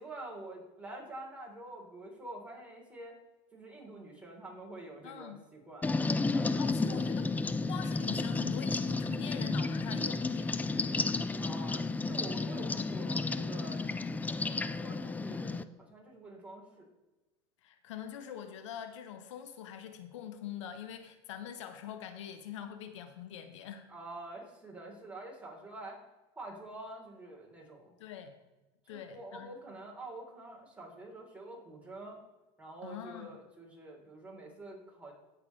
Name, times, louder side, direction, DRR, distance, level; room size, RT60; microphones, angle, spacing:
voice 1, 0.0-3.2 3.5-6.0 6.3-6.9 11.4-15.6 15.9-16.9 23.9-26.0 26.4-27.9 28.9-32.2 32.6-35.1, right 2 dB, 10° right, -2 dB, 3.5 m, -47 dB
voice 2, 5.0-5.4 6.6-7.3 7.6-10.8 17.6-23.9 28.0-28.3 28.9-29.5 32.8-33.4, left 9 dB, 90° left, 8 dB, 1.0 m, -44 dB
sound 1, 5.8-15.6, left 3 dB, 10° left, 0.4 m, -32 dB
16.5 x 5.9 x 3.2 m, 1.1 s
supercardioid pair, 110°, 15 cm